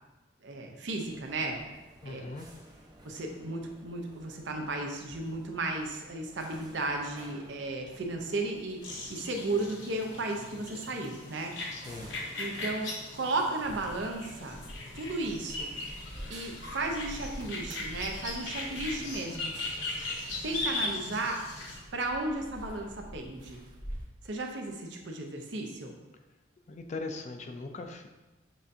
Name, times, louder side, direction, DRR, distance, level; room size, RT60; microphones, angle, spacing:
voice 1, 0.4-1.7 2.1-2.3 3.0-11.5 12.4-14.6 14.9-15.7 16.3-19.5 20.4-21.4 21.9-23.6 24.2-25.9, right 2 dB, 70° right, 2 dB, 0.6 m, -34 dB
sound 1, 1.0-20.6, right 1 dB, 20° right, 0.6 m, -55 dB
voice 2, 2.0-2.5 11.7-12.1 26.7-28.1, left 3 dB, 35° left, 5 dB, 0.3 m, -40 dB
sound 2, 8.8-21.8, left 2 dB, 75° left, 0.9 m, -39 dB
sound 3, 13.6-24.0, equal, 45° right, 1.2 m, -47 dB
7.2 x 2.6 x 2.7 m, 1.1 s
head